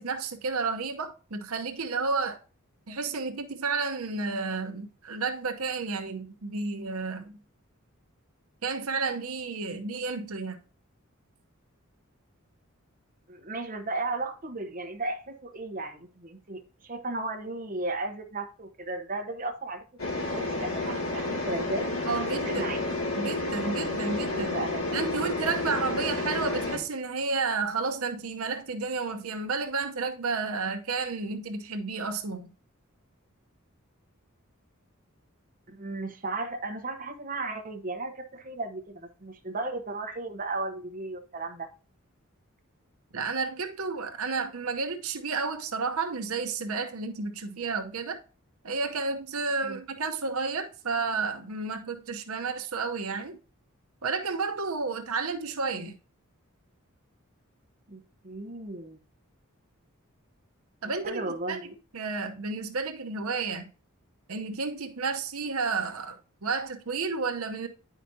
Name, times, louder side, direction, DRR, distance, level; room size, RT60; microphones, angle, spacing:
voice 1, 0.0-2.4 2.9-7.3 8.6-10.6 22.1-22.7 23.2-24.6 24.9-32.5 43.1-48.2 48.6-53.4 54.0-56.0 60.8-63.7 64.3-67.7, right 4 dB, 90° right, 0.9 m, -31 dB
voice 2, 13.3-19.8 20.3-21.9 22.3-22.8 24.2-25.0 35.7-41.7 49.6-49.8 57.9-59.0 61.0-61.7, right 2 dB, 40° right, 1.0 m, -35 dB
sound 1, 20.0-26.8, left 2 dB, 75° left, 2.7 m, -30 dB
9.6 x 5.0 x 2.7 m
head